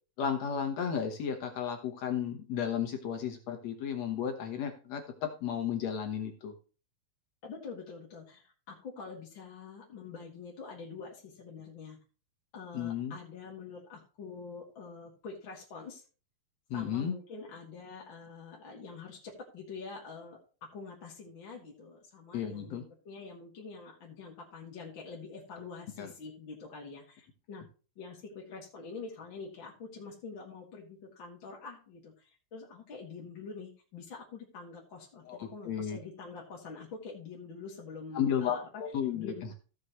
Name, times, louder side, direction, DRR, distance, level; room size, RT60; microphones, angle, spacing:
voice 1, 0.2-6.5 12.7-13.2 16.7-17.1 22.3-22.8 26.0-26.1 35.3-36.0 38.1-39.3, left 8 dB, 60° left, 5 dB, 1.9 m, -33 dB
voice 2, 7.4-12.0 12.5-16.0 16.7-27.7 28.0-38.8 39.1-39.5, left 4 dB, 40° left, -3 dB, 2.1 m, -46 dB
16.0 x 6.4 x 3.0 m, 0.34 s
omnidirectional pair, 4.4 m